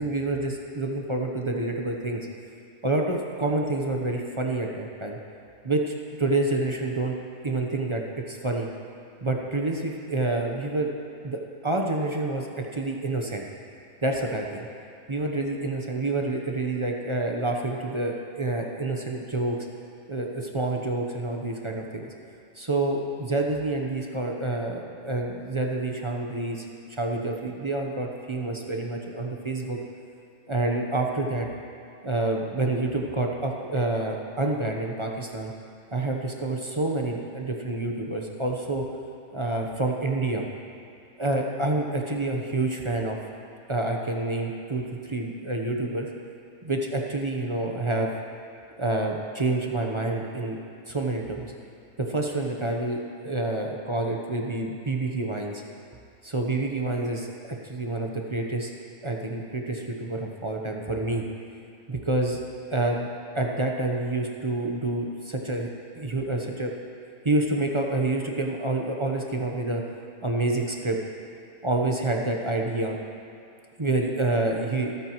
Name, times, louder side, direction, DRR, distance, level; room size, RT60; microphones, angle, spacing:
voice 1, 0.0-2.3 2.8-5.2 5.6-7.1 7.4-8.0 8.3-8.7 9.2-10.9 11.2-13.4 14.0-14.7 15.1-19.6 20.1-22.1 22.5-26.6 26.9-29.8 30.5-31.5 32.0-35.5 35.9-38.8 39.3-40.4 41.2-43.2 43.7-46.1 46.6-48.1 48.8-50.6 50.9-51.5 52.0-55.6 56.2-58.7 59.0-61.2 61.9-62.4 62.7-63.1 63.3-65.7 65.9-66.7 67.2-69.8 70.2-71.0 71.6-73.0 73.8-74.9, right 2 dB, 25° right, 1 dB, 0.8 m, -28 dB
26.5 x 8.9 x 3.1 m, 2.5 s
omnidirectional pair, 1.6 m